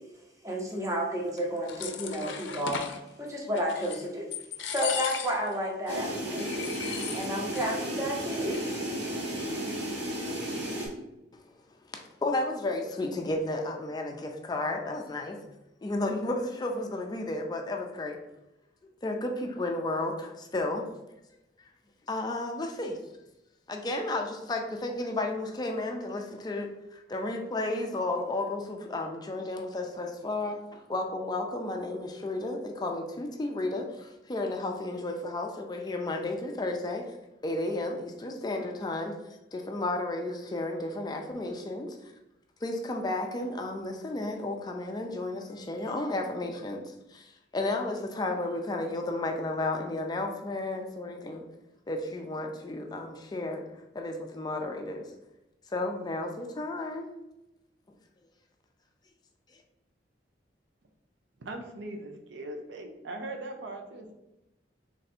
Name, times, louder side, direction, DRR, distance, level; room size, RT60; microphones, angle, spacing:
voice 1, 0.4-2.8 3.2-4.3 4.7-6.6 7.1-9.3, equal, 15° right, -1 dB, 0.7 m, -32 dB
sound 1, 1.4-3.0 3.5-4.1 4.3-5.5 5.9-6.0 6.4-7.7 8.0-8.1 8.3-8.9, left 7 dB, 85° left, 0.5 m, -37 dB
sound 2, 5.9-10.9, right 1 dB, 70° right, 1.1 m, -33 dB
voice 2, 11.9-15.4 15.8-18.2 19.0-20.9 22.1-23.0 23.7-37.0 37.4-39.1 39.5-42.1 42.6-51.4 51.9-53.6 53.9-55.0 55.7-57.0, left 2 dB, 20° left, 3 dB, 0.3 m, -33 dB
voice 3, 61.4-64.1, right 2 dB, 90° right, 3 dB, 0.6 m, -40 dB
3.2 x 2.5 x 4.2 m, 0.93 s
head